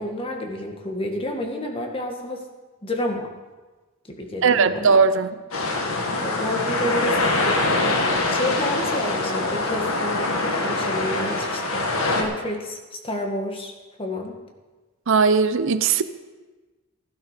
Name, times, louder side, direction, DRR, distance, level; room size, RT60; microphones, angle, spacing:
voice 1, 0.0-2.4 2.8-3.3 4.1-5.0 6.2-10.3 10.6-13.7 14.0-14.4, left 1 dB, 25° left, 1.8 m, -30 dB
voice 2, 4.4-5.3 15.1-16.0, right 5 dB, 60° right, 0.6 m, -18 dB
sound 1, 5.5-12.2, left 2 dB, 80° left, 2.0 m, -24 dB
15.0 x 12.0 x 5.0 m
head